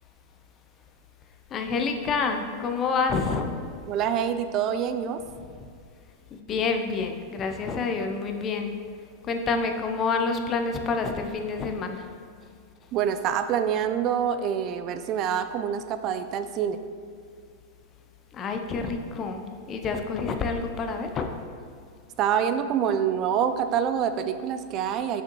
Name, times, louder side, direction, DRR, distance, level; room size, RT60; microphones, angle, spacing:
voice 1, 1.5-3.5 6.3-8.7 9.2-12.1 18.3-21.3, left 4 dB, 30° left, 5 dB, 0.6 m, -28 dB
voice 2, 3.9-5.2 12.9-16.8 22.2-25.2, right 8 dB, 40° right, 9 dB, 0.4 m, -26 dB
6.3 x 5.7 x 3.0 m, 2.2 s
hypercardioid pair, 125°, 0 cm